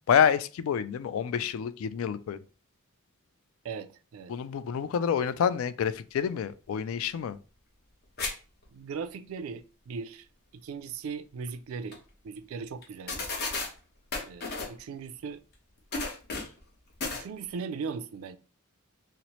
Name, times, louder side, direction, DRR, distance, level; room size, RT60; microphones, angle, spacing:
voice 1, 0.1-2.4 4.3-7.4, left 7 dB, 70° left, 0.3 m, -27 dB
voice 2, 3.6-4.3 8.7-10.3 10.5-12.0 12.2-13.4 14.3-15.4 17.1-18.4, right 5 dB, 75° right, 0.3 m, -38 dB
sound 1, 8.2-8.3 8.6-8.7 11.5-11.6 11.9-12.0 12.8-12.9 13.1-13.7 14.1-14.8 15.9-16.6 17.0-17.2, left 3 dB, 50° left, 0.9 m, -33 dB
4.1 x 2.0 x 2.9 m
head